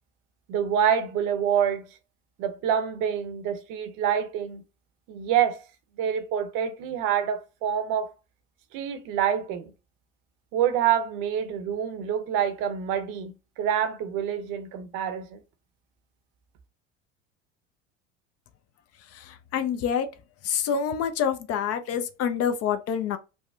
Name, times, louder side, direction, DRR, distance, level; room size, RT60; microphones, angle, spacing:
voice 1, 0.5-1.9 2.4-4.6 5.1-5.6 6.0-8.1 8.7-9.7 10.5-15.4, right 9 dB, 55° right, 0.8 m, -26 dB
voice 2, 19.2-20.1 20.4-23.2, left 7 dB, 40° left, 0.5 m, -27 dB
3.3 x 2.1 x 2.5 m
hypercardioid pair, 80°, 37 cm